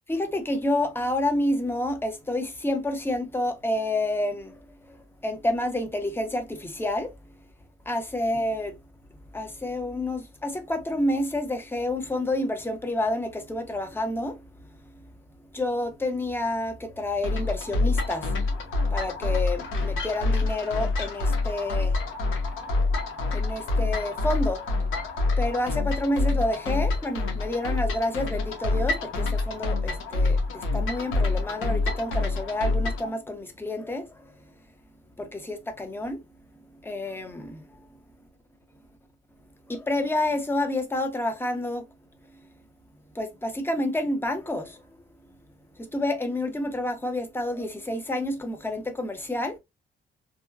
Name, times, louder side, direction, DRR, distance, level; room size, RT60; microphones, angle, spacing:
voice 1, 0.1-7.1 7.9-8.8 9.3-14.4 15.5-18.4 18.9-22.0 23.2-24.7 25.4-34.3 35.2-36.2 36.8-37.6 39.7-41.8 43.1-44.8 45.8-49.6, left 1 dB, 10° left, 0.7 m, -29 dB
sound 1, 17.2-33.1, left 3 dB, 80° left, 0.9 m, -27 dB
2.8 x 2.2 x 2.3 m
cardioid pair, 90°, 20 cm